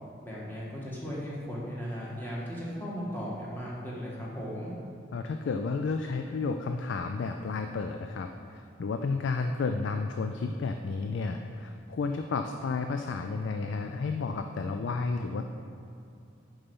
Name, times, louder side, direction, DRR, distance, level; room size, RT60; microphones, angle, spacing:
voice 1, 0.2-4.7, equal, 10° left, -6 dB, 1.5 m, -37 dB
voice 2, 5.1-15.5, left 4 dB, 65° left, 6 dB, 0.3 m, -32 dB
7.0 x 5.5 x 5.3 m, 2.6 s
head